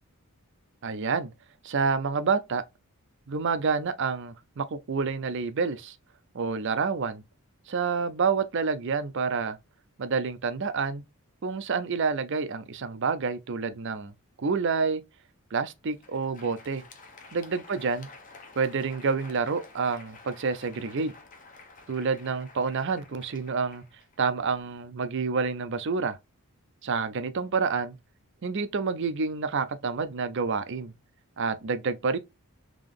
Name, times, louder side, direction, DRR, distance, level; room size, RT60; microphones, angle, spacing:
voice 1, 0.8-1.3 1.6-2.6 3.3-6.0 6.3-7.2 7.7-9.6 10.0-11.0 11.4-14.1 14.4-15.0 15.5-16.8 17.3-18.1 18.6-21.1 21.9-23.8 24.2-26.2 26.8-28.0 28.4-30.9 31.4-32.2, right 5 dB, 55° right, 0.5 m, -28 dB
Crowd, 15.8-24.8, left 3 dB, 35° left, 0.8 m, -51 dB
3.7 x 2.9 x 3.4 m
head